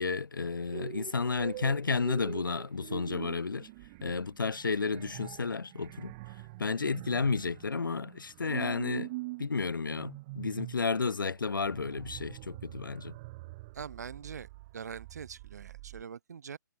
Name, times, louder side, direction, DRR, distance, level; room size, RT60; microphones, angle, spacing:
voice 1, 0.0-3.7 4.0-6.1 6.6-9.1 9.4-13.1, left 4 dB, 85° left, 0.4 m, -32 dB
sound 1, 0.7-16.0, right 22 dB, 20° right, 0.4 m, -44 dB
voice 2, 13.7-16.6, right 7 dB, 55° right, 0.8 m, -43 dB
figure-of-eight pair, 135°, 11 cm